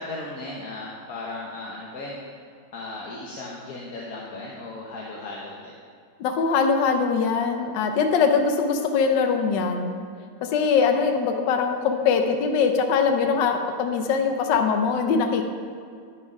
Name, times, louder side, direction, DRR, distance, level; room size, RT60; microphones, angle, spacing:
voice 1, 0.0-2.2 2.7-5.8, left 2 dB, 55° left, -4 dB, 1.4 m, -36 dB
voice 2, 6.2-10.0 10.5-15.5, left 5 dB, 70° left, 5 dB, 1.4 m, -22 dB
9.9 x 7.0 x 5.2 m, 2.3 s
omnidirectional pair, 2.1 m